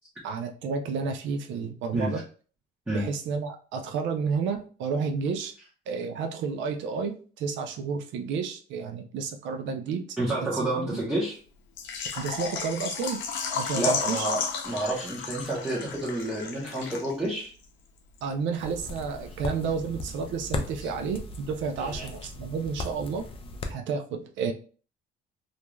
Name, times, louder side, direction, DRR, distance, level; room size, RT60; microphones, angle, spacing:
voice 1, 0.2-2.2 2.9-5.5 5.9-10.2 10.6-11.0 12.2-13.2 13.5-14.3 18.2-23.3 23.7-24.5, right 5 dB, 85° right, 5 dB, 0.4 m, -31 dB
voice 2, 10.2-11.4 13.7-17.5 20.8-20.9 21.8-22.1, right 1 dB, 10° right, -7 dB, 0.7 m, -29 dB
Water / Liquid, 11.8-17.4 17.6-17.7 18.2-18.3, left 6 dB, 85° left, 0.6 m, -33 dB
sound 1, 18.6-23.7, left 2 dB, 30° left, 0.3 m, -37 dB
2.4 x 2.2 x 3.0 m, 0.39 s
cardioid pair, 150°, 19 cm